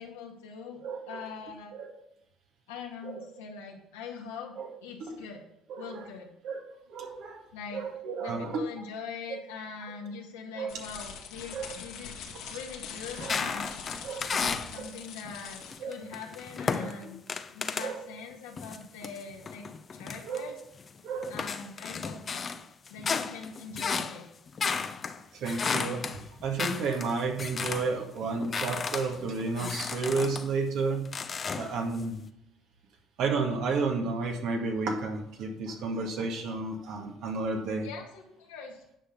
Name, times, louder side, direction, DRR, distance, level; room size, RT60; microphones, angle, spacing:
voice 1, 0.0-1.8 2.7-5.4 5.8-6.3 7.5-7.8 8.2-12.2 12.5-13.9 14.3-17.2 17.5-19.7 19.9-20.5 21.3-22.5 22.9-24.3 37.8-38.8, left 5 dB, 90° left, 0 dB, 2.1 m, -42 dB
voice 2, 0.8-1.2 1.7-1.9 3.0-3.3 4.6-4.7 5.0-5.2 5.7-6.1 6.4-6.6 6.9-7.4 7.7-8.6 9.3-9.4 10.6-10.7 11.5-11.7 13.2-13.4 14.0-14.3 14.8-14.9 15.8-15.9 16.8-17.1 17.8-18.0 20.2-20.5 21.0-21.4 25.3-31.1 31.5-32.3 33.2-37.9, right 4 dB, 65° right, 2 dB, 1.9 m, -32 dB
sound 1, 10.7-15.9, left 6 dB, 70° left, 1.9 m, -43 dB
sound 2, 13.2-14.8 15.2-18.0 18.6-20.9 21.2-28.0 28.2-30.5 31.0-32.0, left 5 dB, 40° left, 0.8 m, -34 dB
9.9 x 6.0 x 5.2 m, 0.81 s
hypercardioid pair, 70°, 0 cm